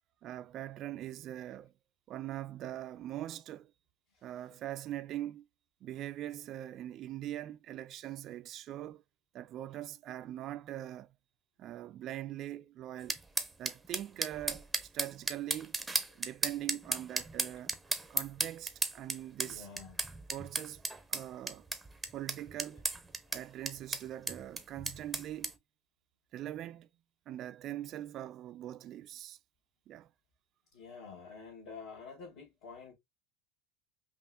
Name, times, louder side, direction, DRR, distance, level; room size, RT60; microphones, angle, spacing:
voice 1, 0.2-1.7 2.1-3.7 4.2-5.5 5.8-9.0 9.3-11.1 11.6-13.2 13.6-15.8 16.2-17.7 18.1-19.7 20.3-20.8 21.1-21.7 22.1-22.8 23.3-25.5 26.3-26.9 27.3-29.4 29.9-30.1, right 13 dB, 45° right, 0.3 m, -42 dB
sound 1, 13.1-25.5, right 3 dB, 5° right, 0.6 m, -35 dB
voice 2, 19.4-20.1 22.7-22.8 23.3-23.4 30.7-32.9, left 5 dB, 65° left, 2.9 m, -49 dB
5.4 x 2.5 x 2.5 m
supercardioid pair, 135°, 0 cm